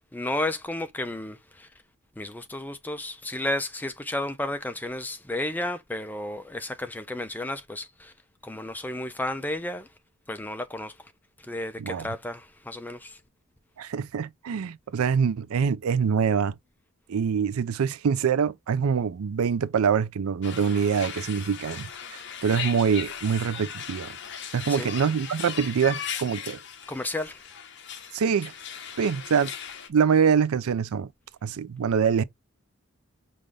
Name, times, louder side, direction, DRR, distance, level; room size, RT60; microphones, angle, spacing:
voice 1, 0.1-1.7 2.2-8.1 8.4-9.9 10.3-10.9 11.4-13.2 24.7-24.9 26.9-27.4, left 1 dB, 10° left, 0.4 m, -32 dB
voice 2, 13.8-16.5 17.1-24.1 24.5-26.6 28.1-28.5 29.0-29.5 29.9-31.1 31.4-32.2, right 6 dB, 80° right, 0.4 m, -25 dB
sound 1, 20.4-29.9, left 8 dB, 50° left, 0.7 m, -38 dB
5.3 x 2.5 x 3.2 m
head